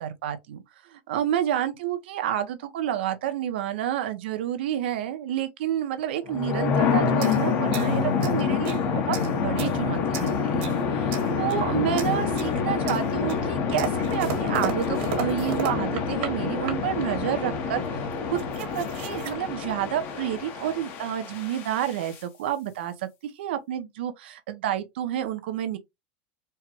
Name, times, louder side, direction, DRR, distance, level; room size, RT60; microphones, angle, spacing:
voice 1, 0.0-25.8, right 11 dB, 75° right, 0.9 m, -30 dB
sound 1, 6.3-22.2, left 5 dB, 40° left, 1.0 m, -27 dB
sound 2, 7.2-8.8 9.1-9.8 10.1-10.8 11.1-11.7 12.0-12.5 12.9-16.3 16.6-17.1 17.8-17.9 18.1-19.3, right 7 dB, 55° right, 1.7 m, -35 dB
4.5 x 2.3 x 3.0 m
supercardioid pair, 155°, 6 cm